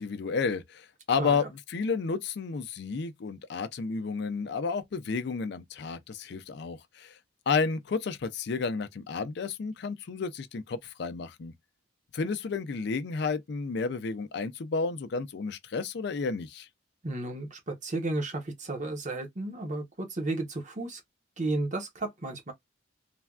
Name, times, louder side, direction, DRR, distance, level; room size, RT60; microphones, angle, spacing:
voice 1, 0.0-7.2 7.5-11.5 12.1-16.7, left 4 dB, 55° left, 0.4 m, -31 dB
voice 2, 1.2-1.5 17.0-21.0 21.4-22.5, right 2 dB, 40° right, 0.8 m, -33 dB
3.3 x 2.2 x 2.3 m
head